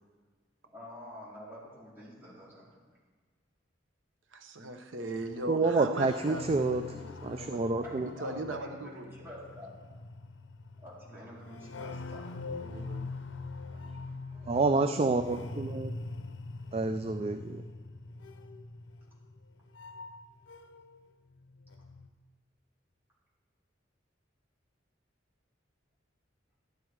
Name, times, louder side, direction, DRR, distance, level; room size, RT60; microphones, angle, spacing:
voice 1, 0.7-2.7 6.9-7.0 7.8-9.7 10.8-12.3 14.9-15.3, left 1 dB, 10° right, -9 dB, 4.3 m, -48 dB
voice 2, 4.3-7.6 8.2-9.1 12.6-13.0, right 1 dB, 90° right, 5 dB, 0.9 m, -39 dB
sound 1, 5.2-21.0 21.2-22.1, left 3 dB, 75° left, 0.7 m, -43 dB
voice 3, 5.5-6.8 7.2-8.1 14.4-15.9 16.7-17.6, right 3 dB, 30° right, 8 dB, 0.4 m, -28 dB
13.0 x 9.6 x 4.7 m, 1.4 s
head